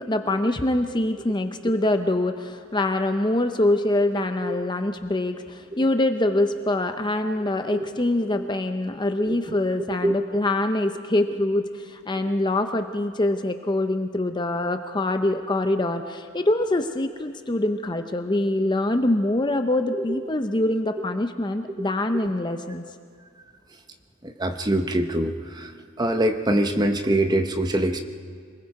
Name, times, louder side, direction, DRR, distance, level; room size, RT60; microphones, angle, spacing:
voice 1, 0.0-22.8, left 1 dB, 20° left, 7 dB, 0.6 m, -24 dB
voice 2, 24.2-25.7 26.0-28.0, right 1 dB, 20° right, 6 dB, 0.9 m, -24 dB
27.0 x 20.5 x 4.8 m, 2.1 s
head